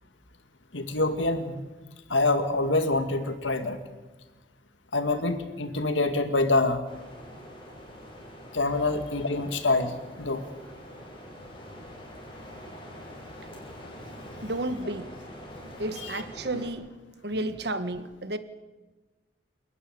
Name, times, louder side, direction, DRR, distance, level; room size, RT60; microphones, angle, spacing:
voice 1, 0.7-1.6 2.1-3.8 4.9-6.8 8.5-10.5, left 2 dB, 85° left, 2.1 m, -26 dB
sound 1, 6.8-16.7, equal, 30° left, 5.7 m, -45 dB
voice 2, 14.4-15.1 15.8-16.9 17.2-18.4, right 1 dB, 60° right, 1.5 m, -32 dB
28.0 x 11.0 x 9.4 m
head